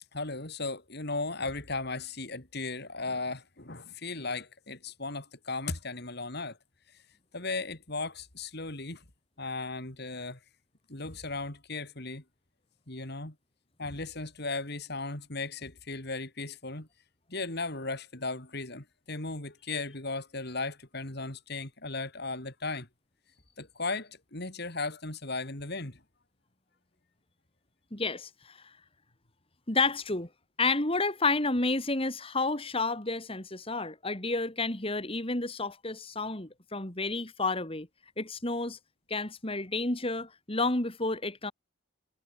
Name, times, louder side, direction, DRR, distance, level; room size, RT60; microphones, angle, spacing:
voice 1, 0.1-6.6 7.3-9.0 9.4-10.4 10.9-12.2 12.9-13.3 13.8-16.9 17.3-22.9 23.6-26.0, left 3 dB, 50° left, 3.5 m, -36 dB
voice 2, 27.9-28.6 29.7-30.3 30.6-37.9 38.2-38.8 39.1-41.5, left 3 dB, 25° left, 2.4 m, -30 dB
head